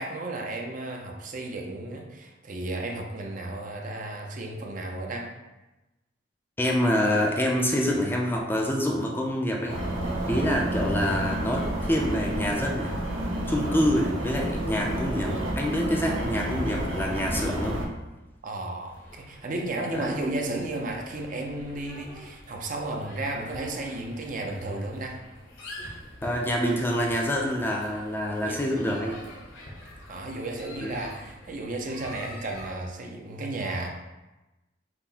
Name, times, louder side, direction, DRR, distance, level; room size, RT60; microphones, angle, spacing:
voice 1, 0.0-5.3 18.4-25.2 28.4-28.6 30.1-33.9, right 2 dB, 45° right, 1 dB, 0.6 m, -33 dB
voice 2, 6.6-9.8 10.3-12.9 13.5-17.8 19.9-20.1 26.2-29.2 30.8-31.0, equal, 10° left, -1 dB, 0.5 m, -26 dB
sound 1, 9.7-17.9, right 1 dB, 85° right, 0.8 m, -30 dB
sound 2, 18.8-32.7, left 1 dB, 80° left, 1.3 m, -46 dB
5.8 x 2.1 x 4.1 m, 1.1 s
head